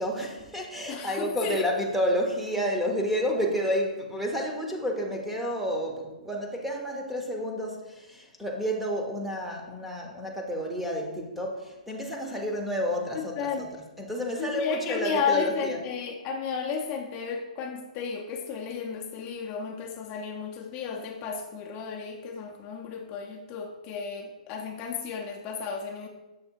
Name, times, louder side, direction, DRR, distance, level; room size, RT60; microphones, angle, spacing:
voice 1, 0.0-13.7 14.0-15.8, equal, 5° right, 0 dB, 0.8 m, -30 dB
voice 2, 0.9-1.7 13.1-13.7 14.4-26.1, left 6 dB, 30° left, 1 dB, 0.6 m, -33 dB
6.5 x 3.2 x 4.5 m, 1.1 s
hypercardioid pair, 145°, 4 cm